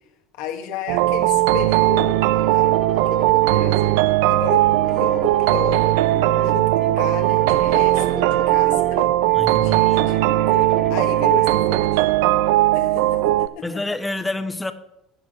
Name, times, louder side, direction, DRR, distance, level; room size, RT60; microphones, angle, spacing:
voice 1, 0.4-2.2 2.5-3.9 4.3-5.9 6.4-9.1 9.6-12.0 12.7-13.8, left 9 dB, 75° left, 1.4 m, -33 dB
sound 1, 0.9-13.5, right 16 dB, 80° right, 0.4 m, -18 dB
sound 2, 1.7-11.5, right 2 dB, 40° right, 2.6 m, -34 dB
voice 2, 9.4-10.0 13.6-14.7, left 2 dB, 10° left, 1.0 m, -28 dB
9.7 x 7.6 x 6.4 m
supercardioid pair, 80°, 0 cm